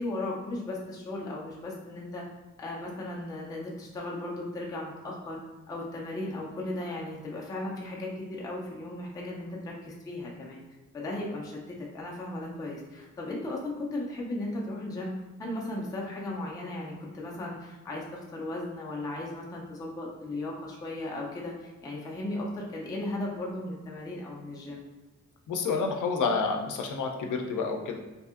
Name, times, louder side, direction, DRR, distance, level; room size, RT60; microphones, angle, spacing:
voice 1, 0.0-2.2 2.6-5.4 5.7-10.6 10.9-24.8, left 1 dB, 15° left, -3 dB, 0.3 m, -36 dB
voice 2, 25.5-28.0, left 4 dB, 80° left, 3 dB, 0.5 m, -29 dB
2.6 x 2.5 x 2.4 m, 1.2 s
wide cardioid pair, 170°, 30 cm